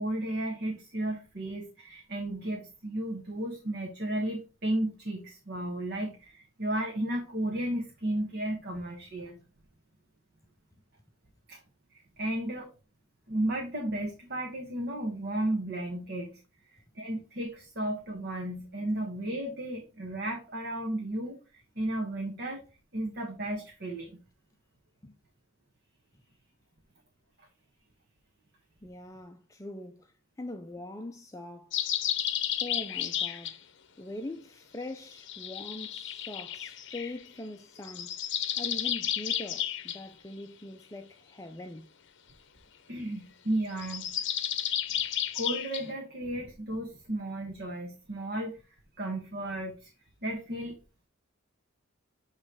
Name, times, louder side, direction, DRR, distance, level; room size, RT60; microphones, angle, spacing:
voice 1, 0.0-9.4 11.5-11.6 11.9-12.7 13.3-16.4 16.9-22.6 22.9-24.2 42.9-44.1 45.0-48.6 49.0-49.9 50.2-50.7, right 1 dB, 55° right, 1.4 m, -34 dB
voice 2, 28.8-31.8 32.6-33.5 34.0-38.1 38.6-41.9, left 1 dB, 15° left, 0.5 m, -42 dB
sound 1, 31.7-33.6 35.2-37.1 37.8-40.0 43.7-45.8, left 10 dB, 60° left, 0.7 m, -32 dB
8.7 x 3.2 x 4.8 m
head